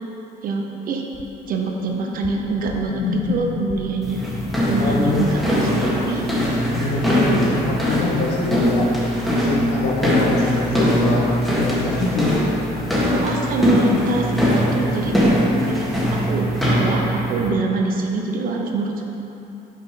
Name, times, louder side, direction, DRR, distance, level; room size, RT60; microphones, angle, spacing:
voice 1, 0.4-1.0 1.5-4.2 4.7-6.3 13.1-15.1 15.6-19.0, right 3 dB, 60° right, 1 dB, 0.8 m, -25 dB
sound 1, 1.1-4.1 6.9-7.0, left 6 dB, 50° left, 0.5 m, -30 dB
sound 2, 4.0-17.5, equal, ahead, 1.6 m, -21 dB
voice 2, 4.8-5.3 6.7-8.9 9.2-12.3, left 3 dB, 80° left, -3 dB, 1.5 m, -24 dB
5.9 x 5.3 x 5.0 m, 2.8 s
cardioid pair, 110°, 17 cm